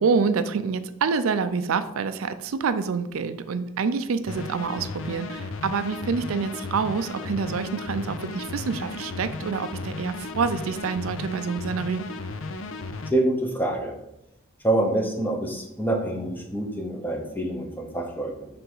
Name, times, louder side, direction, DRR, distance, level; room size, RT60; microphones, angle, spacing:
voice 1, 0.0-12.1, right 5 dB, 80° right, 11 dB, 0.4 m, -27 dB
sound 1, 4.3-13.1, left 3 dB, 70° left, 0.6 m, -35 dB
voice 2, 13.1-14.0 14.6-18.5, right 1 dB, 10° left, 2 dB, 0.8 m, -26 dB
5.8 x 3.4 x 5.5 m, 0.83 s
head